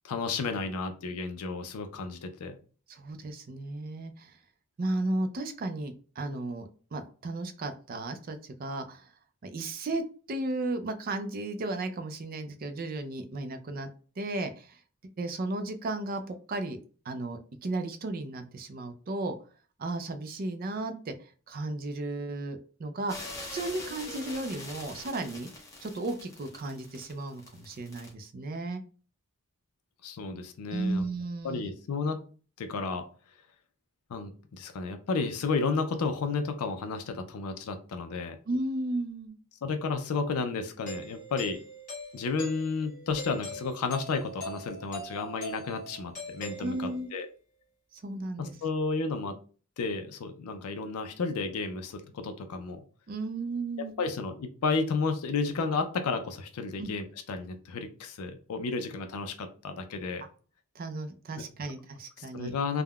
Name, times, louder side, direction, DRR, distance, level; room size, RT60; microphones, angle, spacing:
voice 1, 0.0-2.6 30.0-31.1 31.4-32.2 32.6-33.0 34.1-38.4 39.6-41.6 42.1-47.3 48.4-49.3 49.8-52.8 54.0-60.2 62.2-62.8, left 4 dB, 85° left, 7 dB, 0.4 m, -32 dB
voice 2, 2.9-4.4 4.8-9.1 9.4-10.0 10.3-13.9 14.2-14.8 15.2-16.8 17.1-19.3 19.8-25.5 25.8-28.8 30.7-31.7 38.5-39.4 46.6-47.1 47.9-48.5 53.1-54.0 56.8-56.9 60.8-62.5, right 2 dB, 40° right, 8 dB, 0.4 m, -34 dB
sound 1, 23.1-28.1, left 2 dB, 15° left, 0.7 m, -43 dB
Doorbell, 40.9-47.2, left 1 dB, 35° left, 1.3 m, -42 dB
3.5 x 2.1 x 2.2 m, 0.39 s
head